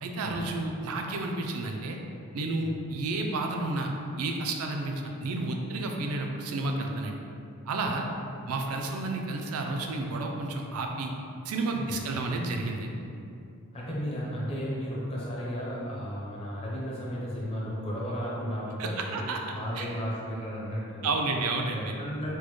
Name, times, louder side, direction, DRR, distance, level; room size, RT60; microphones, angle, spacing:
voice 1, 0.0-2.0 2.3-3.9 4.2-7.2 7.7-8.1 8.5-11.1 11.5-12.9 18.8-19.4 19.8-19.9 21.0-21.9, right 2 dB, 80° right, 2 dB, 0.4 m, -31 dB
voice 2, 13.7-19.3 19.5-21.1 21.7-22.3, equal, 25° left, -5 dB, 0.6 m, -34 dB
4.5 x 2.1 x 3.0 m, 2.6 s
head